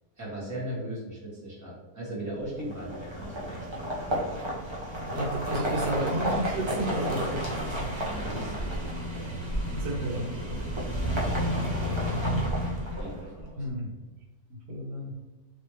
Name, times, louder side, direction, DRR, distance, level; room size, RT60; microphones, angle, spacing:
voice 1, 0.2-3.6 4.0-4.4 8.0-9.6 10.3-10.9 13.0-13.6, right 1 dB, 10° right, -7 dB, 1.3 m, -39 dB
sound 1, 2.6-13.4, equal, 40° right, 0.4 m, -31 dB
voice 2, 5.1-7.9 9.7-10.6 13.6-13.9 14.5-15.1, right 1 dB, 85° right, -2 dB, 1.5 m, -32 dB
3.3 x 3.1 x 3.0 m, 1.2 s
omnidirectional pair, 1.6 m